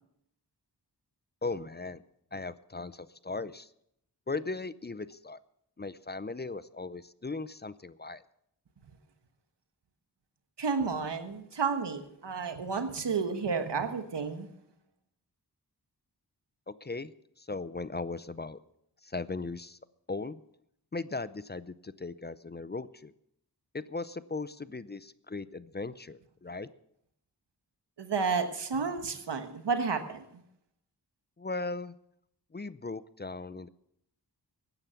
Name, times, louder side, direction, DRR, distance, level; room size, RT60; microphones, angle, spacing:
voice 1, 1.4-2.0 2.3-3.7 4.3-5.4 5.8-8.2 16.7-17.1 17.4-18.6 19.0-19.8 20.1-20.4 20.9-23.1 23.7-26.7 31.4-31.9 32.5-33.7, left 3 dB, 25° left, 16 dB, 0.5 m, -38 dB
voice 2, 10.6-14.5 28.0-30.2, right 5 dB, 90° right, 8 dB, 1.4 m, -31 dB
16.0 x 9.7 x 5.8 m, 0.76 s
cardioid pair, 45°, 40 cm